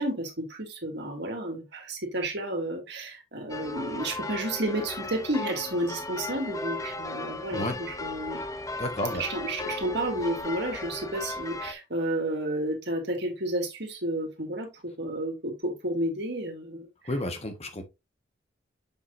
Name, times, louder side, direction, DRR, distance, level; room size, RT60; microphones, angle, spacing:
voice 1, 0.0-8.4 9.1-16.9, right 1 dB, 60° right, 2.3 m, -31 dB
sound 1, 3.5-11.7, left 2 dB, 15° left, 0.6 m, -36 dB
voice 2, 8.8-9.2 17.1-17.8, left 1 dB, 35° left, 1.5 m, -31 dB
7.2 x 6.1 x 2.7 m
head